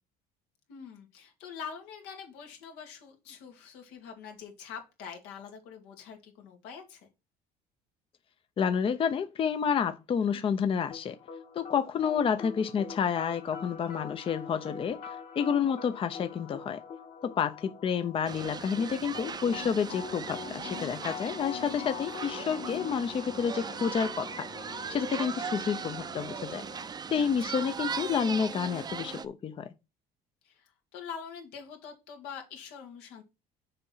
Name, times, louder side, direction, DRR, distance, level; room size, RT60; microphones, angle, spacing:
voice 1, 0.7-7.1 27.2-27.8 30.4-33.2, left 7 dB, 85° left, 2.2 m, -45 dB
voice 2, 8.6-11.2 11.5-16.8 17.2-26.6 27.1-29.7, left 7 dB, 35° left, 0.6 m, -30 dB
sound 1, 10.9-26.9, left 7 dB, 50° left, 1.8 m, -44 dB
sound 2, 18.2-29.2, right 6 dB, 25° right, 0.6 m, -38 dB
6.7 x 4.5 x 5.6 m
cardioid pair, 120°, 17 cm